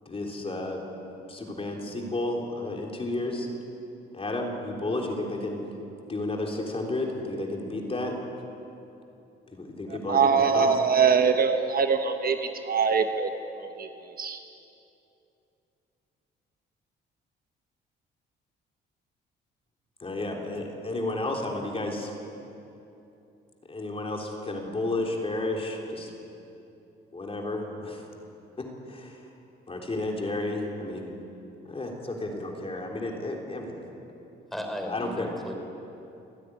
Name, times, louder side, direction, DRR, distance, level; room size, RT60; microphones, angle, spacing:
voice 1, 0.0-0.8 1.3-3.5 4.1-5.6 6.1-8.2 9.5-10.7 20.0-22.1 23.7-26.1 27.1-28.1 28.6-29.3 29.7-31.1 31.7-33.8 34.9-35.3, left 2 dB, 30° left, 1 dB, 3.5 m, -32 dB
voice 2, 10.1-12.4 12.6-13.3 13.6-13.9 14.2-14.4, right 6 dB, 50° right, 6 dB, 1.2 m, -23 dB
voice 3, 34.5-35.5, equal, ahead, 3 dB, 4.0 m, -35 dB
28.5 x 10.0 x 9.9 m, 2.8 s
cardioid pair, 90°, 20 cm